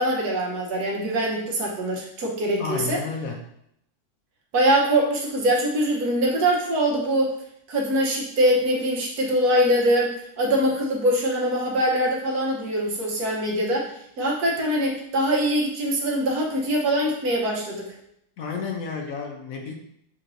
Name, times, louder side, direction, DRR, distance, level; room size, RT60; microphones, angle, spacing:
voice 1, 0.0-3.0 4.5-7.3 7.7-13.9 14.2-17.9, right 1 dB, 80° right, -2 dB, 1.5 m, -23 dB
voice 2, 2.6-3.4 18.4-19.7, left 5 dB, 70° left, 2 dB, 1.1 m, -31 dB
6.5 x 3.1 x 2.6 m, 0.74 s
omnidirectional pair, 1.6 m